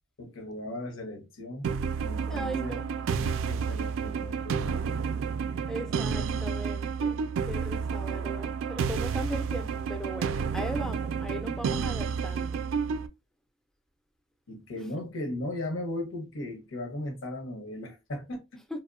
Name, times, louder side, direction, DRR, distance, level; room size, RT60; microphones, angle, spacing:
voice 1, 0.2-1.7 2.0-2.8 3.1-4.9 5.7-6.5 14.5-18.6, left 1 dB, 90° left, 0.7 m, -37 dB
sound 1, 1.6-13.1, right 6 dB, 85° right, 0.3 m, -30 dB
voice 2, 2.3-2.9 5.7-7.2 7.5-12.6, right 1 dB, 5° left, 0.4 m, -38 dB
2.8 x 2.0 x 2.3 m
head